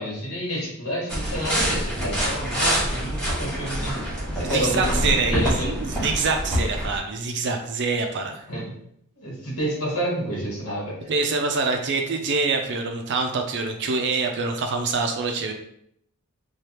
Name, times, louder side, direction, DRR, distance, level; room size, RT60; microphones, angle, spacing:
voice 1, 0.0-5.7 8.5-8.7 9.2-11.1, equal, 75° left, -5 dB, 1.3 m, -29 dB
sound 1, 1.1-7.0, equal, 5° left, 1.3 m, -26 dB
voice 2, 4.4-8.4 11.1-15.5, right 4 dB, 50° right, 4 dB, 0.4 m, -25 dB
3.2 x 2.3 x 2.9 m, 0.71 s
head